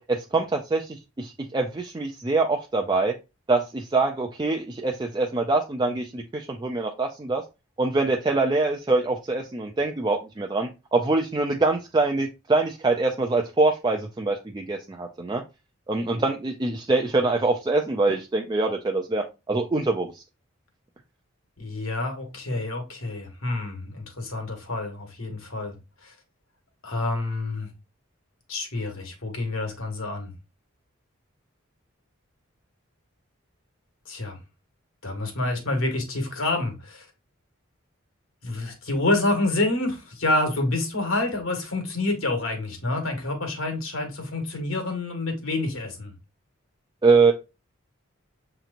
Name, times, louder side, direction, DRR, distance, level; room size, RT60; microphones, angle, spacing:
voice 1, 0.0-3.1 3.5-7.4 7.8-15.4 15.9-20.2 47.0-47.3, right 3 dB, 20° right, 0.3 m, -24 dB
voice 2, 21.6-25.8 26.0-26.1 26.8-27.7 28.5-30.3 34.1-34.4 35.0-37.1 38.4-46.1, left 2 dB, 70° left, 1.3 m, -28 dB
6.6 x 2.9 x 2.5 m
head